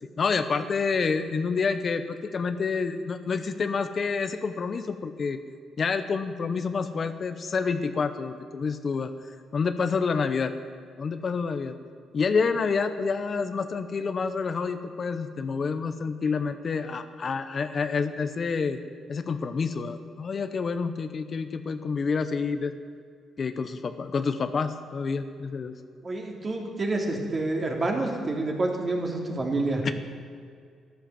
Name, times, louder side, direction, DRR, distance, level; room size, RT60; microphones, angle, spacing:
voice 1, 0.2-5.4 5.8-10.5 11.0-11.8 12.1-18.8 19.1-22.7 23.4-25.8 29.8-29.9, left 5 dB, 45° left, 9 dB, 0.8 m, -28 dB
voice 2, 26.0-29.8, right 2 dB, 35° right, 0 dB, 3.1 m, -28 dB
13.0 x 11.5 x 7.5 m, 2.2 s
cardioid pair, 90°, 0 cm